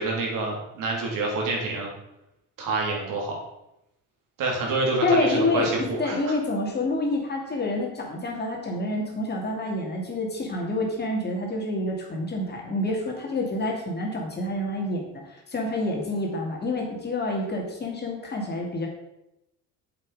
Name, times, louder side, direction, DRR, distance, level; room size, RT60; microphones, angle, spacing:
voice 1, 0.0-1.9 2.6-3.4 4.4-6.2, right 2 dB, 60° right, -1 dB, 3.4 m, -27 dB
voice 2, 5.0-18.9, left 2 dB, 30° left, 0 dB, 2.7 m, -28 dB
7.9 x 7.7 x 5.0 m, 0.87 s
cardioid pair, 115°, 36 cm